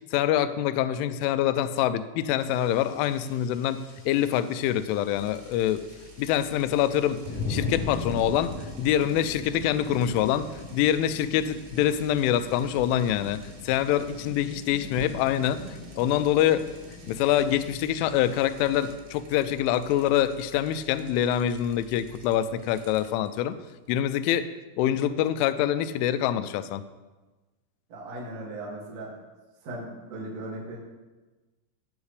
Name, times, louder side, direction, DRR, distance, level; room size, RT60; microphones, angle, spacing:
voice 1, 0.1-5.8 6.2-7.2 7.5-15.7 16.0-16.6 17.1-23.6 23.9-24.5 24.8-26.8, left 11 dB, 85° left, 13 dB, 2.9 m, -25 dB
sound 1, 2.4-18.9, left 2 dB, 10° left, 1.3 m, -40 dB
sound 2, 5.1-24.4, left 1 dB, 75° right, 2.8 m, -52 dB
voice 2, 27.9-29.2 29.6-30.8, right 1 dB, 45° right, -5 dB, 2.6 m, -38 dB
15.5 x 8.2 x 3.3 m, 1.2 s
omnidirectional pair, 5.7 m